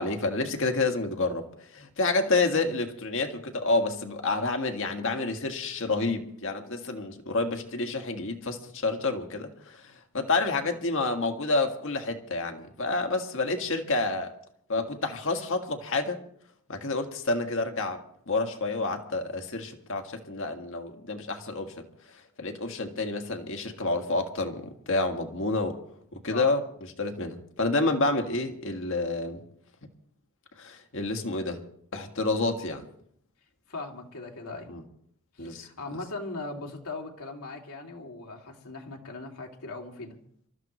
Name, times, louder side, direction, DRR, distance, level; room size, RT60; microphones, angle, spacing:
voice 1, 0.0-1.4 1.7-14.3 14.7-16.2 16.7-21.8 22.4-25.8 26.1-26.6 27.0-29.4 30.6-31.6 31.9-32.9 34.7-34.8 35.4-35.7, left 3 dB, 60° left, 5 dB, 1.7 m, -29 dB
voice 2, 33.7-34.7 35.3-40.2, left 3 dB, 80° left, 0 dB, 2.6 m, -39 dB
27.0 x 13.5 x 3.1 m, 0.67 s
head